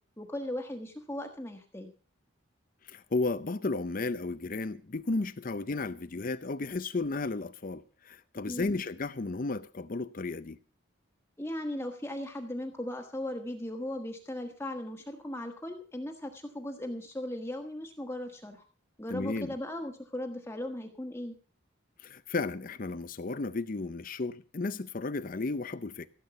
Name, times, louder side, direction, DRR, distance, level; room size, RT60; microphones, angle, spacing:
voice 1, 0.2-1.9 8.5-8.7 11.4-18.6 19.0-21.3, left 1 dB, 10° left, 1.4 m, -37 dB
voice 2, 2.9-10.6 19.1-19.5 22.0-26.1, left 3 dB, 45° left, 0.6 m, -33 dB
16.0 x 8.4 x 7.0 m
head